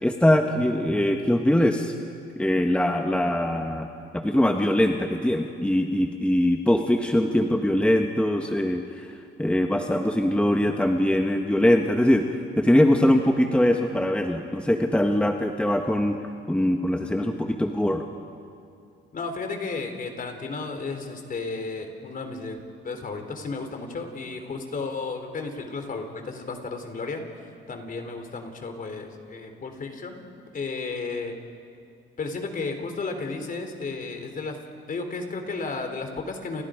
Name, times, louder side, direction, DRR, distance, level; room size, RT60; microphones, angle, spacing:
voice 1, 0.0-1.9 2.4-3.9 4.1-9.1 9.4-16.2 16.5-18.0, left 1 dB, 5° left, 3 dB, 1.5 m, -22 dB
voice 2, 19.1-22.6 22.8-30.2 30.5-31.4 32.2-34.6 34.9-36.6, left 3 dB, 45° left, 5 dB, 3.8 m, -33 dB
29.5 x 29.0 x 5.2 m, 2.4 s
cardioid pair, 90°, 20 cm